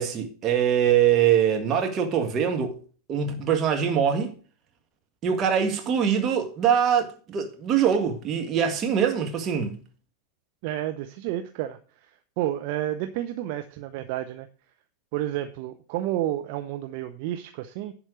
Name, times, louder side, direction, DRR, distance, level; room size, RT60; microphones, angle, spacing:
voice 1, 0.0-2.8 3.1-4.3 5.2-9.8, right 8 dB, 30° right, 1.8 m, -23 dB
voice 2, 10.6-14.5 15.1-17.9, right 13 dB, 45° right, 0.7 m, -31 dB
11.0 x 4.4 x 7.8 m
figure-of-eight pair, 90°, 0 cm